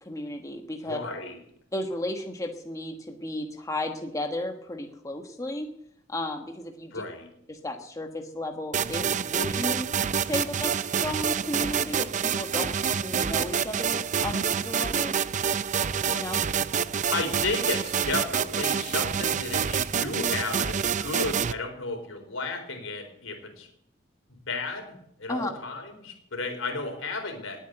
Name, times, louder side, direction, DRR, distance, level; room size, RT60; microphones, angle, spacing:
voice 1, 0.0-1.0 1.7-5.7 6.1-6.9 7.5-9.9 10.2-15.1 16.1-16.4 25.3-25.5, left 1 dB, 15° left, 3 dB, 1.4 m, -34 dB
voice 2, 0.9-1.4 6.9-7.3 17.1-23.7 24.3-24.9 25.2-27.6, left 3 dB, 80° left, 6 dB, 4.1 m, -33 dB
sound 1, 8.7-21.5, right 7 dB, 40° right, 0.5 m, -27 dB
19.5 x 8.9 x 8.0 m, 0.75 s
head